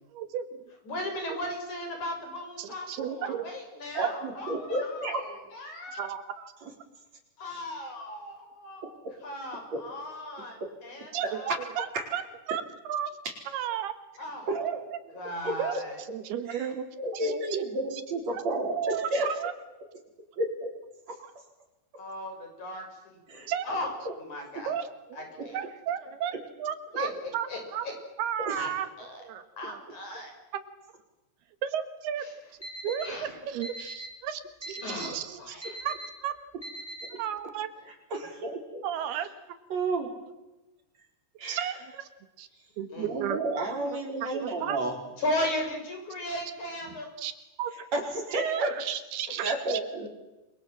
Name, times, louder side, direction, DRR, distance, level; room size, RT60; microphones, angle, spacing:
voice 1, 0.1-0.6 2.6-3.5 5.9-6.5 11.1-11.9 12.1-12.2 12.5-13.1 13.5-13.9 14.6-15.1 15.6-15.8 16.1-17.6 18.7-19.5 23.5-23.7 24.7-27.9 28.2-28.9 29.2-29.8 31.6-32.3 32.8-36.0 36.2-36.3 37.1-37.7 38.8-39.3 41.5-42.1 42.4-42.5 42.8-43.4 43.8-43.9 44.3-44.8 47.2-47.3 47.6-47.7 48.3-49.8, right 9 dB, 80° right, 11 dB, 3.5 m, -33 dB
voice 2, 0.9-6.1 7.4-8.9 9.2-10.5 10.8-11.6 14.2-14.5 15.1-16.0 22.0-23.9 24.2-24.7 25.1-25.6 26.9-27.1 27.5-27.9 28.6-28.7 29.0-29.2 29.6-30.3 33.0-33.3 34.8-35.7 42.9-43.1 45.2-47.1, left 1 dB, 50° left, 3 dB, 7.4 m, -36 dB
voice 3, 3.9-5.2 6.6-6.7 9.7-9.8 11.2-11.6 11.9-12.1 14.5-14.8 15.4-15.8 16.5-16.7 17.0-19.3 20.4-20.7 21.1-21.2 23.3-23.5 24.1-24.2 28.5-28.6 37.1-37.2 38.1-38.8 39.7-40.1 41.4-41.7 43.0-45.0 47.9-48.7 49.4-50.1, right 2 dB, 45° right, 3 dB, 5.5 m, -31 dB
Alarm, 32.6-33.1 33.6-34.1 34.6-35.1 35.6-36.1 36.6-37.1, right 1 dB, 10° left, 4.3 m, -39 dB
29.0 x 24.0 x 7.5 m, 1.0 s
omnidirectional pair, 4.5 m